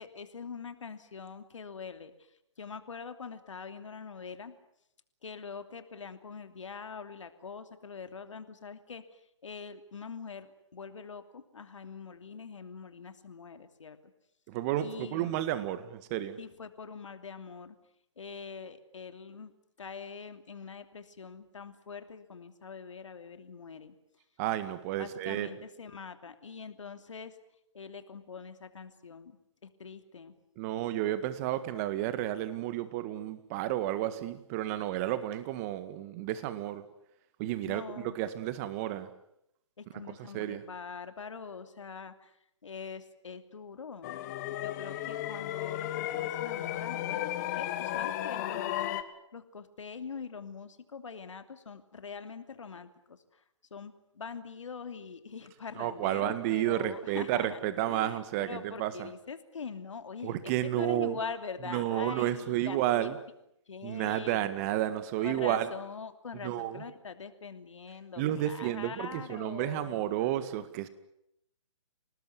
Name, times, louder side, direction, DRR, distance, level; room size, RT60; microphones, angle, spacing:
voice 1, 0.0-4.5 5.2-14.0 14.8-15.4 16.4-17.8 18.2-19.5 19.8-23.9 25.0-27.4 27.7-29.4 29.6-30.4 37.6-38.2 39.8-42.4 42.6-44.2 44.6-53.4 53.7-57.6 57.9-63.1 63.7-64.5 65.2-70.1, left 5 dB, 75° left, 9 dB, 2.9 m, -43 dB
voice 2, 14.5-16.4 24.4-25.5 30.6-36.8 37.4-39.1 40.2-40.6 55.8-59.1 60.2-61.2 61.7-63.2 63.8-65.7 66.4-66.8 68.2-70.9, right 13 dB, 30° right, 12 dB, 1.9 m, -31 dB
sound 1, 44.0-49.0, left 13 dB, 35° left, 1.7 m, -34 dB
28.0 x 19.0 x 9.6 m, 0.79 s
hypercardioid pair, 140°, 16 cm